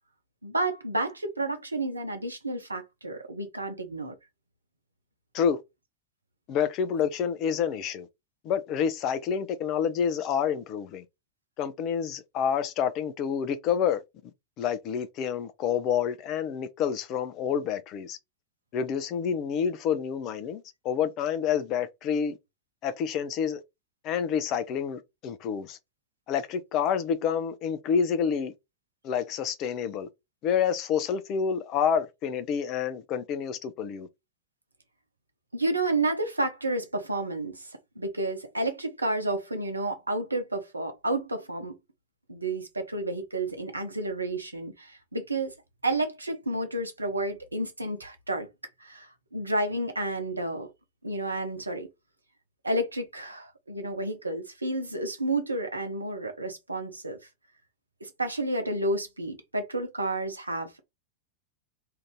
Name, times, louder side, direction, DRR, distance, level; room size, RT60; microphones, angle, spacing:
voice 1, 0.4-4.1 35.5-37.7 38.0-41.7 42.3-45.5 45.8-48.5 48.8-50.7 51.0-51.9 52.6-57.2 58.0-60.8, right 2 dB, 80° right, 0.8 m, -31 dB
voice 2, 6.5-8.1 8.4-11.0 11.6-14.0 14.6-18.2 18.7-22.4 22.8-23.6 24.0-25.8 26.3-28.5 29.0-30.1 30.4-34.1, left 7 dB, 40° left, 0.5 m, -28 dB
2.8 x 2.5 x 3.5 m
figure-of-eight pair, 90°, 0 cm